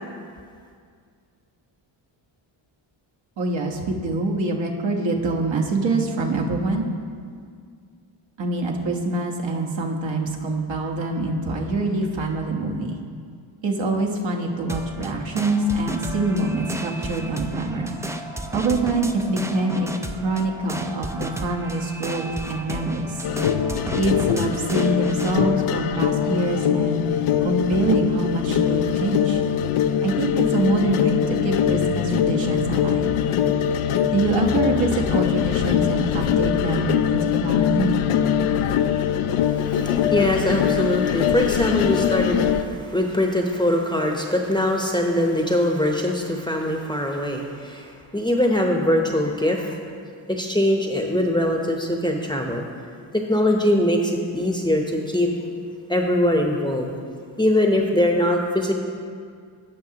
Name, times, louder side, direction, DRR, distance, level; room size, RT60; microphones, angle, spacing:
voice 1, 3.4-6.9 8.4-13.0 13.6-17.9 18.5-19.9 20.1-23.2 23.9-27.0 27.4-29.4 30.0-33.2 34.1-38.0, right 2 dB, 60° right, 0 dB, 1.3 m, -25 dB
sound 1, 14.7-25.4, right 1 dB, 5° right, 0.4 m, -33 dB
sound 2, 23.2-42.6, left 9 dB, 80° left, 0.6 m, -22 dB
voice 2, 39.4-49.8 50.3-52.6 53.1-55.3 55.9-56.9 57.4-58.7, left 1 dB, 10° left, 2 dB, 0.8 m, -22 dB
15.0 x 5.7 x 2.9 m, 2.1 s
cardioid pair, 70°, 50 cm